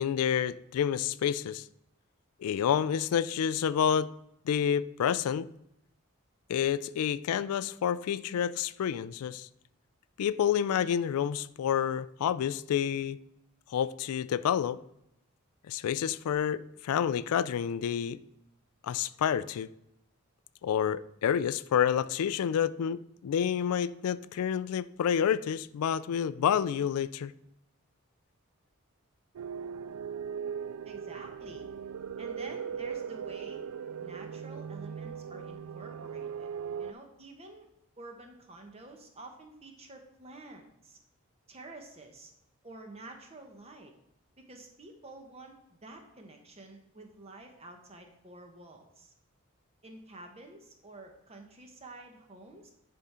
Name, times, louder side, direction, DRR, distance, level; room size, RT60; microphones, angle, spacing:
voice 1, 0.0-1.6 2.4-4.1 4.5-5.5 6.5-9.5 10.2-13.2 13.7-14.8 15.7-18.2 18.8-19.7 20.6-27.3, left 8 dB, 90° left, 0.3 m, -29 dB
sound 1, 29.4-36.9, right 7 dB, 90° right, 0.3 m, -39 dB
voice 2, 30.8-31.7 32.2-33.6 34.0-36.5 36.8-37.7 38.0-41.0 41.5-42.3 42.6-43.9 44.5-49.1 49.8-52.7, right 2 dB, 30° right, 1.0 m, -49 dB
10.0 x 3.7 x 4.2 m
head